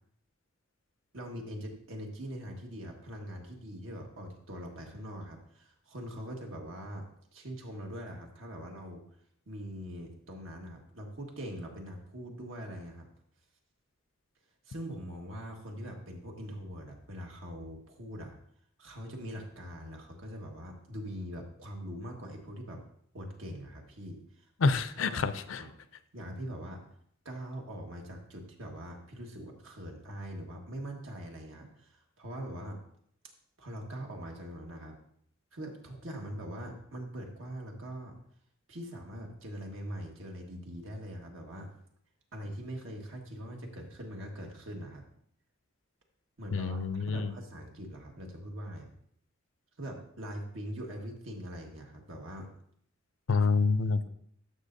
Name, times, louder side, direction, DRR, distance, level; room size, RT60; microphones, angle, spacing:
voice 1, 1.1-7.0 7.3-9.0 9.5-13.1 14.6-18.3 18.8-22.8 23.1-25.3 25.6-25.7 26.1-26.8 27.2-32.8 33.6-34.9 35.5-38.2 38.7-41.7 42.3-45.0 46.4-48.9 49.8-52.5, equal, 80° right, 1 dB, 1.5 m, -42 dB
voice 2, 24.6-25.6 46.5-47.3 53.3-54.0, left 4 dB, 75° left, 13 dB, 0.5 m, -27 dB
11.5 x 6.6 x 2.6 m, 0.67 s
head